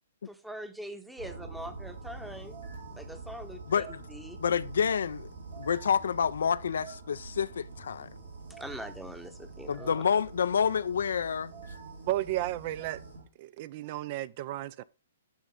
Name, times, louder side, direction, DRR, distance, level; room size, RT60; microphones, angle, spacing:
voice 1, 0.3-2.6 3.0-3.8 4.1-4.4 8.6-10.0, equal, 5° right, 0.8 m, -43 dB
sound 1, 1.2-13.2, right 3 dB, 85° right, 3.2 m, -45 dB
voice 2, 3.7-4.0 4.4-5.3 5.6-8.1 9.7-11.5, left 7 dB, 70° left, 0.3 m, -28 dB
voice 3, 12.1-13.0 13.4-14.8, right 15 dB, 45° right, 0.3 m, -33 dB
11.5 x 4.0 x 3.6 m
figure-of-eight pair, 120°, 0 cm